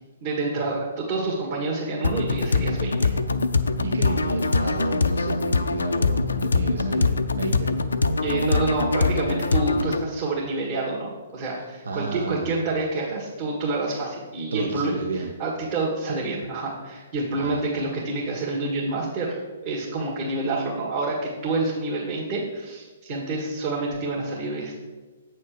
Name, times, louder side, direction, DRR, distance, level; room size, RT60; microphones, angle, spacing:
voice 1, 0.2-3.1 8.2-24.8, right 2 dB, 45° right, -5 dB, 1.8 m, -28 dB
sound 1, 2.0-10.0, left 3 dB, 80° left, 0.5 m, -23 dB
voice 2, 3.8-7.7 11.5-12.5 14.5-15.3 17.4-17.7, right 4 dB, 70° right, 4 dB, 0.7 m, -32 dB
8.0 x 4.3 x 6.7 m, 1.3 s
figure-of-eight pair, 125°, 0 cm